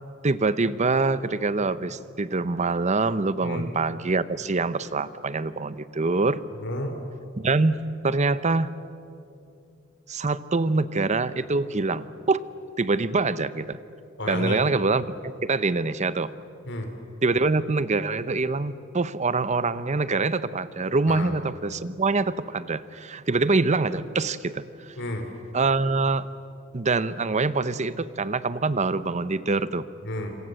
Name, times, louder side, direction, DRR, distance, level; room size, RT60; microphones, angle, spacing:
voice 1, 0.2-6.4 7.4-8.7 10.1-12.4 12.8-13.8 14.3-16.3 17.2-25.0 25.5-26.3 26.7-29.9, right 3 dB, 35° right, 15 dB, 0.8 m, -25 dB
voice 2, 6.6-7.0 14.2-14.6 16.6-16.9 21.1-21.3 25.0-25.3 30.0-30.4, left 1 dB, 60° left, 5 dB, 3.2 m, -31 dB
27.5 x 26.5 x 7.7 m, 2.6 s
head